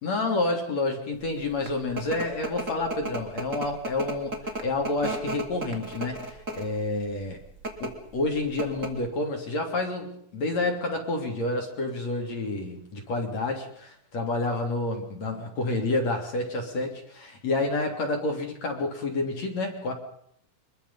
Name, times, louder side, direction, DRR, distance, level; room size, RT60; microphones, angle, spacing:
voice 1, 0.0-7.4 7.8-19.9, left 2 dB, 50° left, 2 dB, 4.2 m, -29 dB
sound 1, 1.4-6.8 7.5-7.9 8.3-8.4 8.6-9.1, right 1 dB, 25° right, 2.8 m, -33 dB
24.0 x 22.0 x 5.7 m, 0.70 s
omnidirectional pair, 4.1 m